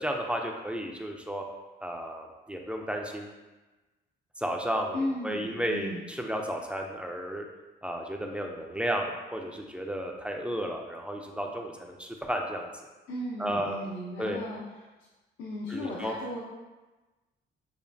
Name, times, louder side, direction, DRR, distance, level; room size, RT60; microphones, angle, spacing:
voice 1, 0.0-1.4 1.8-3.3 4.4-7.5 7.8-12.7 13.4-13.8 14.2-14.4 15.7-16.1, equal, 5° right, 1 dB, 0.5 m, -33 dB
voice 2, 4.9-6.0 13.1-14.8 15.4-16.4, left 1 dB, 75° left, -5 dB, 0.8 m, -35 dB
6.9 x 2.4 x 2.7 m, 1.2 s
cardioid pair, 90°, 20 cm